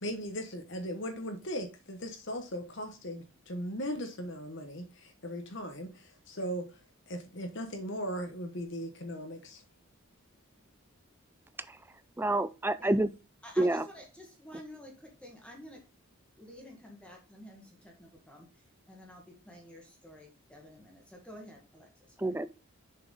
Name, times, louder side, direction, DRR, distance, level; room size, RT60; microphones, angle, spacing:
voice 1, 0.0-6.8 7.1-9.6, equal, 55° left, 1.1 m, -38 dB
voice 2, 12.2-13.1 13.6-13.8 22.2-22.5, right 1 dB, 10° right, 0.4 m, -27 dB
voice 3, 13.4-15.8 16.4-18.5 18.9-21.9 22.2-22.3, equal, 5° left, 1.6 m, -50 dB
6.9 x 5.7 x 3.9 m
head